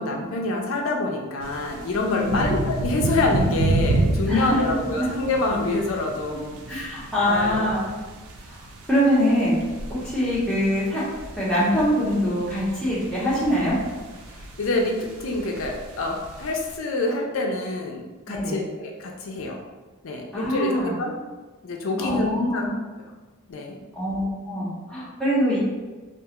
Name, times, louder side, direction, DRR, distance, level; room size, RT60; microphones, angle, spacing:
voice 1, 0.0-6.9 7.3-7.6 14.3-19.6 20.0-21.2 21.6-22.8 23.5-23.8, left 2 dB, 65° left, 1 dB, 0.4 m, -27 dB
sound 1, 1.4-16.7, right 2 dB, 85° right, 0.4 m, -30 dB
voice 2, 2.1-2.5 4.3-4.6 5.0-5.1 6.7-7.8 8.5-8.6 8.9-9.6 9.9-11.0 11.4-13.7 18.3-18.6 20.3-20.9 22.0-22.7 23.9-25.6, equal, 5° left, -10 dB, 0.8 m, -23 dB
2.4 x 2.3 x 2.8 m, 1.3 s
head